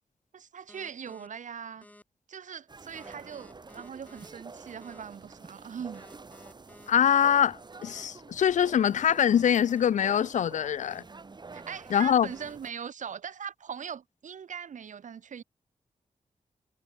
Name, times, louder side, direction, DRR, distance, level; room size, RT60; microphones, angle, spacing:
voice 1, 0.3-1.8 2.3-6.0 11.5-15.4, right 7 dB, 80° right, 2.8 m, -40 dB
sound 1, 0.7-1.3 1.8-2.0 2.9-4.3 4.8-5.0 5.9-7.3 7.8-8.0 8.9-10.3 10.8-11.0 11.9-12.5, left 1 dB, 10° left, 6.7 m, -54 dB
sound 2, 2.7-12.7, right 4 dB, 35° right, 4.0 m, -48 dB
voice 2, 6.9-11.0 11.9-12.3, left 9 dB, 75° left, 0.5 m, -24 dB
wide cardioid pair, 135°, 13 cm